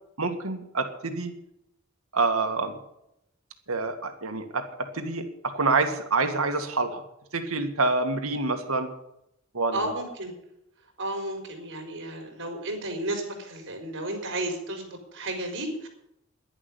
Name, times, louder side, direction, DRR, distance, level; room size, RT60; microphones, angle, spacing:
voice 1, 0.2-1.3 2.1-2.8 3.7-4.6 4.9-5.3 5.5-7.0 7.3-8.9 9.5-9.9, right 3 dB, 85° right, 6 dB, 2.0 m, -26 dB
voice 2, 9.7-10.3 11.0-15.9, right 1 dB, 60° right, 4 dB, 4.6 m, -33 dB
11.0 x 11.0 x 9.9 m, 0.81 s
head